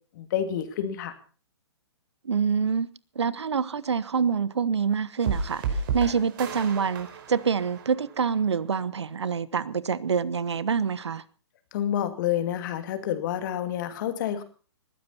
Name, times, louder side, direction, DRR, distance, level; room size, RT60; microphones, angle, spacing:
voice 1, 0.1-1.2 11.7-14.4, left 10 dB, 45° left, 2.6 m, -28 dB
voice 2, 2.2-2.9 3.1-5.6 5.9-11.2, right 6 dB, 70° right, 1.2 m, -26 dB
sound 1, 5.2-8.4, right 5 dB, 50° right, 5.1 m, -32 dB
20.5 x 15.0 x 4.3 m
figure-of-eight pair, 125°, 15 cm